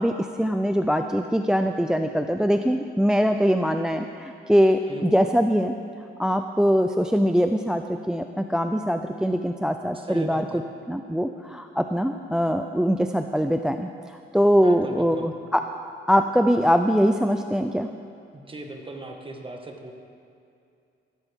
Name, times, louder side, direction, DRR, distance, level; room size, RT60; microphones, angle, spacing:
voice 1, 0.0-5.7 6.2-10.4 10.9-15.6 16.1-17.9, equal, 5° right, 7 dB, 0.4 m, -22 dB
voice 2, 9.9-10.6 14.6-15.3 18.3-19.9, right 2 dB, 25° right, 3 dB, 1.6 m, -37 dB
15.0 x 13.0 x 3.6 m, 2.5 s
cardioid pair, 90°, 20 cm